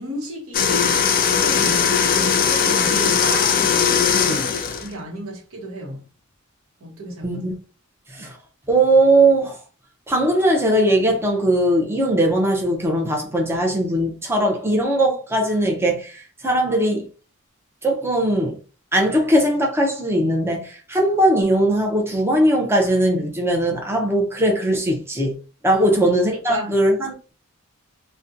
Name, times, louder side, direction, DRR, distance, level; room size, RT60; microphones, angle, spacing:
voice 1, 0.0-1.9 2.4-4.5 4.8-6.0 6.8-7.4 25.7-25.9 26.3-26.7, right 1 dB, 85° right, 0.8 m, -34 dB
sound 1, 0.5-4.9, left 7 dB, 40° left, 0.3 m, -19 dB
voice 2, 8.7-9.6 10.1-17.1 17.8-18.6 18.9-25.4 25.6-27.3, right 1 dB, 10° right, 0.5 m, -19 dB
2.4 x 2.1 x 2.7 m
head